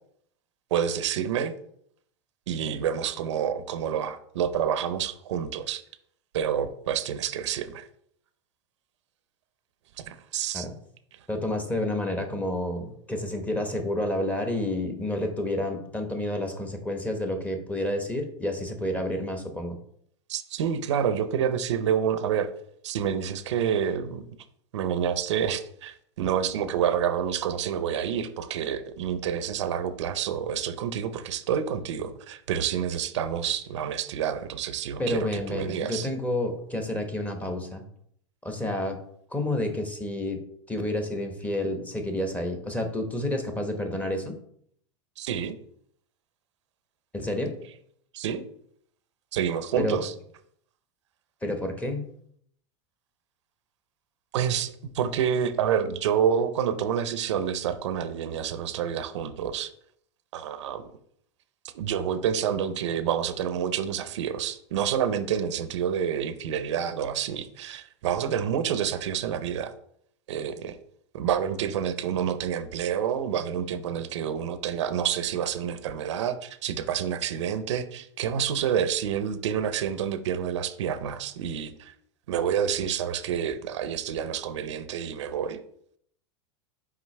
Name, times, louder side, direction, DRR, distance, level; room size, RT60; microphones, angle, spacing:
voice 1, 0.7-1.5 2.5-5.8 6.3-7.9 10.0-10.7 20.3-22.5 22.8-24.3 24.7-36.1 45.2-45.5 48.1-48.4 49.3-50.1 54.3-59.7 60.3-60.8 61.7-69.7 70.3-70.8 71.1-81.9 82.3-85.6, right 8 dB, 80° right, 12 dB, 0.6 m, -28 dB
voice 2, 11.3-19.8 35.0-37.8 38.4-39.0 39.3-44.4 47.1-47.5 49.8-50.0 51.4-52.1, left 1 dB, 10° left, 5 dB, 1.0 m, -29 dB
5.9 x 4.9 x 3.3 m, 0.67 s
hypercardioid pair, 115°, 15 cm